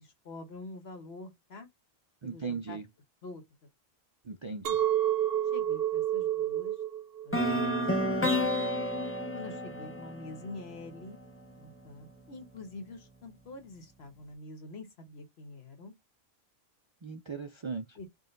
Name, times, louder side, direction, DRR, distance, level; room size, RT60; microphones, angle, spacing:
voice 1, 0.0-1.7 2.2-2.8 3.2-3.4 5.5-6.8 7.2-8.7 9.3-11.2 11.6-15.9 18.0-18.1, left 2 dB, 75° left, 1.4 m, -46 dB
voice 2, 2.2-2.9 4.2-4.8 17.0-18.0, right 5 dB, 50° right, 0.3 m, -38 dB
Chink clink, 4.6-9.8, right 11 dB, 70° right, 0.8 m, -31 dB
sound 1, 7.3-11.3, left 1 dB, 15° left, 0.6 m, -31 dB
3.8 x 2.4 x 3.8 m
omnidirectional pair, 1.1 m